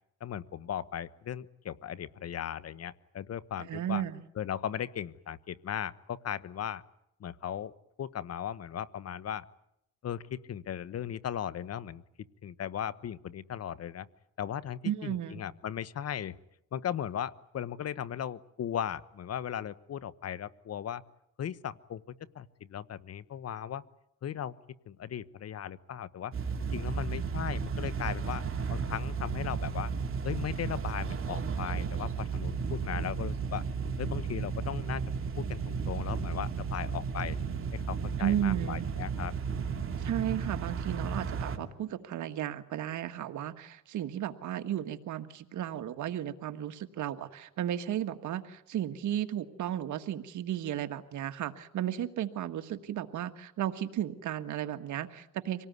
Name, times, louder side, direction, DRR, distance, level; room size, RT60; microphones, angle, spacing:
voice 1, 0.2-4.0 4.3-6.8 7.2-7.7 8.0-9.4 10.0-12.0 12.4-14.1 14.4-16.4 16.7-21.0 21.4-22.0 22.3-23.8 24.2-24.5 24.9-26.3 26.7-28.4 28.7-29.9 30.2-33.6 34.0-35.0 35.4-37.4 37.7-39.3, left 9 dB, 55° left, 17 dB, 1.1 m, -37 dB
voice 2, 3.7-4.2 14.8-15.4 38.2-38.9 40.0-55.7, right 11 dB, 75° right, 9 dB, 1.7 m, -34 dB
sound 1, 26.3-41.6, right 5 dB, 45° right, 2.7 m, -34 dB
25.5 x 18.5 x 9.5 m, 0.80 s
cardioid pair, 90°, 30 cm